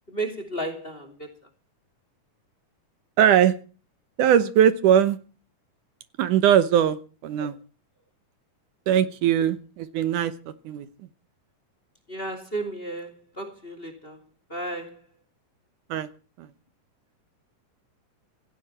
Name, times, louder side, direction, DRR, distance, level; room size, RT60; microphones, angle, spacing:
voice 1, 0.1-1.3 7.4-7.5 12.1-13.1 13.4-14.2 14.5-15.0, right 2 dB, 20° left, 2.6 m, -33 dB
voice 2, 3.2-3.6 4.2-5.2 6.2-7.5 8.9-10.3 10.7-10.9 15.9-16.1 16.4-16.5, right 9 dB, 75° right, 2.4 m, -20 dB
16.5 x 16.5 x 4.3 m
omnidirectional pair, 3.8 m